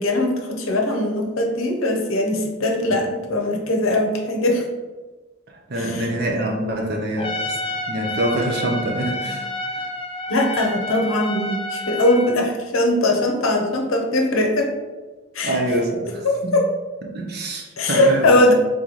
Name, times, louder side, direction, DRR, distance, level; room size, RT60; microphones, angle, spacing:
voice 1, 0.0-4.6 5.7-6.1 7.7-7.8 10.3-14.7 15.3-15.6 16.2-16.7 17.8-18.5, left 1 dB, 70° left, 2 dB, 0.7 m, -20 dB
voice 2, 5.7-7.6 7.9-9.5 9.8-9.9 15.4-16.6 17.1-18.4, right 1 dB, 45° right, 1 dB, 0.6 m, -25 dB
Trumpet, 7.2-12.4, left 1 dB, 25° left, 0.3 m, -29 dB
3.9 x 3.7 x 3.1 m, 1.3 s
head